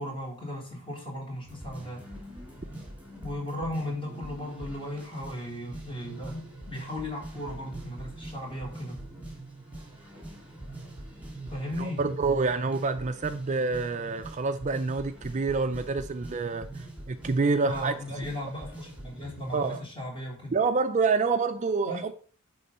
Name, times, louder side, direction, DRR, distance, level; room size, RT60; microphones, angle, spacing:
voice 1, 0.0-2.1 3.2-9.0 11.5-12.0 17.6-20.6 21.9-22.1, left 1 dB, 25° left, 4.3 m, -36 dB
sound 1, 1.5-19.8, right 1 dB, 10° right, 2.7 m, -44 dB
voice 2, 12.0-16.7 17.1-17.9 19.5-19.8 20.5-22.1, right 4 dB, 35° right, 0.5 m, -27 dB
11.0 x 3.9 x 5.4 m
head